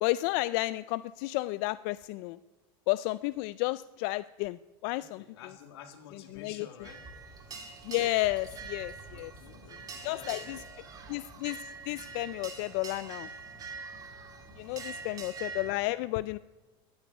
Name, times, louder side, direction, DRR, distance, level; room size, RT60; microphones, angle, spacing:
voice 1, 0.0-2.4 2.9-5.2 6.1-6.7 7.8-9.3 10.0-10.6 11.1-13.3 14.6-16.4, left 19 dB, 60° left, 16 dB, 0.4 m, -32 dB
voice 2, 5.0-7.0 9.1-10.9 14.6-15.1, left 7 dB, 85° left, 6 dB, 2.0 m, -51 dB
sound 1, 6.8-15.7, right 4 dB, 30° right, 2.4 m, -44 dB
14.0 x 9.5 x 9.2 m, 1.2 s
supercardioid pair, 130°, 13 cm